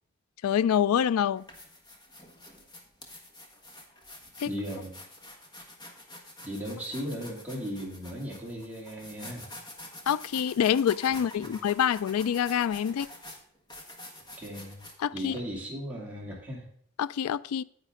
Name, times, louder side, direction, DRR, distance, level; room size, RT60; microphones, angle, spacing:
voice 1, 0.4-1.4 4.4-4.5 10.1-13.1 15.0-15.4 17.0-17.6, left 9 dB, 90° left, 0.3 m, -26 dB
sound 1, 0.6-0.7 1.3-15.4, left 1 dB, 20° left, 1.5 m, -47 dB
voice 2, 4.4-4.9 6.4-9.5 11.1-11.5 14.4-14.8 15.1-16.7, equal, 5° right, 2.4 m, -37 dB
9.9 x 9.1 x 3.7 m
head